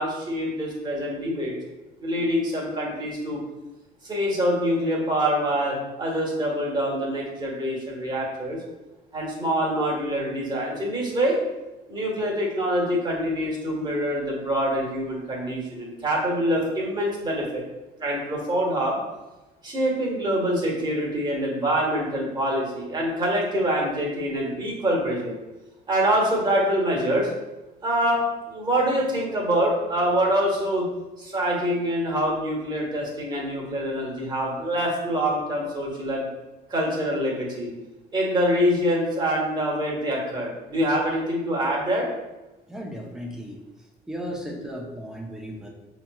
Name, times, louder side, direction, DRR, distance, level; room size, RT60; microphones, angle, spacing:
voice 1, 0.0-1.5 2.0-3.4 4.0-8.6 9.1-11.4 11.9-17.6 18.0-19.0 19.6-25.4 25.9-27.3 27.8-30.9 31.2-36.2 36.7-37.7 38.1-42.1, equal, 25° right, -3 dB, 1.4 m, -25 dB
voice 2, 42.7-43.6 44.1-45.7, equal, 5° right, -1 dB, 0.8 m, -35 dB
5.2 x 3.1 x 2.3 m, 1.1 s
cardioid pair, 110°, 17 cm